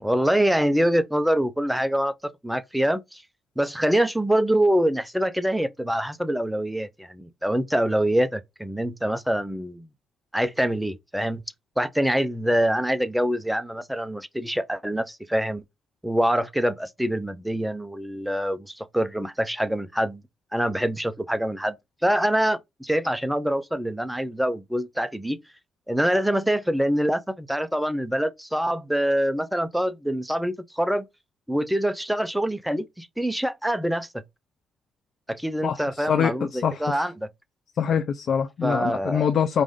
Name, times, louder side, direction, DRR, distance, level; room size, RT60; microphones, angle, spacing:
voice 1, 0.0-2.1 2.4-3.2 3.6-9.9 10.3-11.4 11.8-15.6 16.0-20.2 20.5-21.8 22.0-25.4 25.9-31.0 31.5-34.2 35.3-37.3 38.6-39.3, right 1 dB, 5° right, 0.5 m, -25 dB
voice 2, 36.1-36.8 37.8-39.6, left 7 dB, 60° left, 0.5 m, -24 dB
4.9 x 2.6 x 3.5 m
cardioid pair, 90°, 0 cm